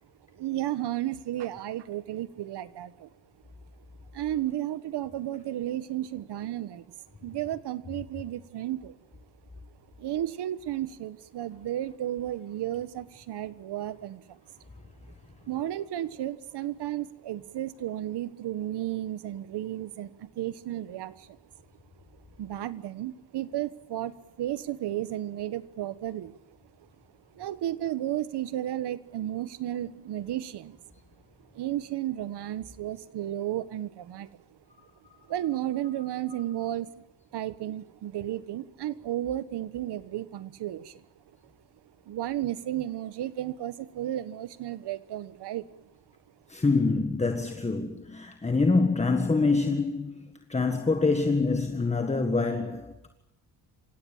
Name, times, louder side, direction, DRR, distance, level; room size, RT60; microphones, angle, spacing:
voice 1, 0.4-3.1 4.1-6.8 7.2-8.9 10.0-14.4 15.5-21.3 22.4-26.3 27.4-30.8 31.5-34.3 35.3-36.9 37.3-40.9 42.1-45.6, right 13 dB, 70° right, 1.5 m, -33 dB
voice 2, 46.5-50.2 50.5-53.1, left 3 dB, 15° left, 1.7 m, -25 dB
27.0 x 17.0 x 7.4 m
cardioid pair, 110°, 42 cm